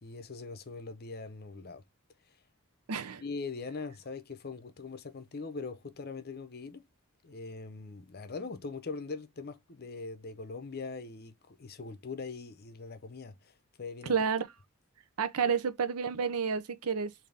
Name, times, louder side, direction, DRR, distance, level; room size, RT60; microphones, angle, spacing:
voice 1, 0.0-1.8 3.2-6.8 7.2-14.2, left 4 dB, 45° left, 0.6 m, -41 dB
voice 2, 2.9-3.2 14.0-14.5 15.2-17.3, right 6 dB, 80° right, 0.6 m, -30 dB
3.9 x 2.7 x 3.3 m
head